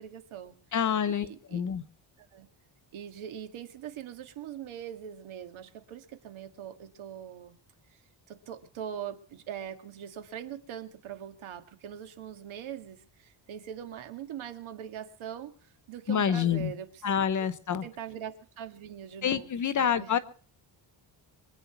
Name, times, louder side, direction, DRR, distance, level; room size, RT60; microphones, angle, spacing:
voice 1, 0.0-0.6 1.1-1.6 2.2-2.5 2.9-7.6 8.3-17.1 17.4-17.5 17.8-20.1, right 9 dB, 90° right, 7 dB, 2.0 m, -42 dB
voice 2, 0.7-1.8 16.1-16.7 17.0-17.8 19.2-20.2, left 8 dB, 40° left, 14 dB, 1.0 m, -27 dB
24.0 x 9.1 x 5.9 m, 0.44 s
cardioid pair, 160°, 47 cm